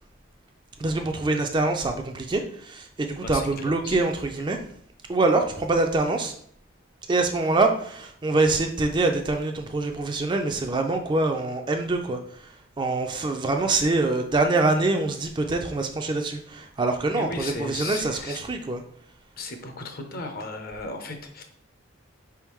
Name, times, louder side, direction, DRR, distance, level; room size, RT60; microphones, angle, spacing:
voice 1, 0.8-4.6 5.1-6.3 7.1-18.8, right 2 dB, 25° right, 5 dB, 0.3 m, -25 dB
voice 2, 3.2-4.0 17.1-18.4 19.4-21.4, left 3 dB, 45° left, 5 dB, 0.7 m, -36 dB
4.9 x 3.5 x 3.1 m, 0.62 s
head